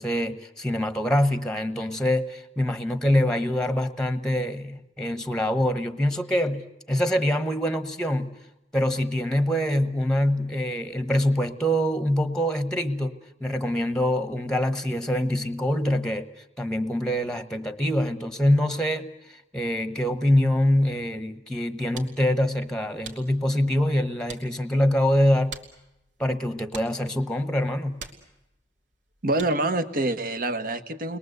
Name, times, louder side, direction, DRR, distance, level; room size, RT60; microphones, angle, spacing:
voice 1, 0.0-8.3 8.7-13.1 13.4-16.3 16.6-25.6 26.2-28.0, left 1 dB, 5° left, 10 dB, 1.1 m, -24 dB
sound 1, 21.5-29.8, right 5 dB, 80° right, 2.9 m, -47 dB
voice 2, 29.2-31.2, right 2 dB, 55° right, 8 dB, 1.4 m, -26 dB
30.0 x 22.0 x 8.1 m, 0.91 s
head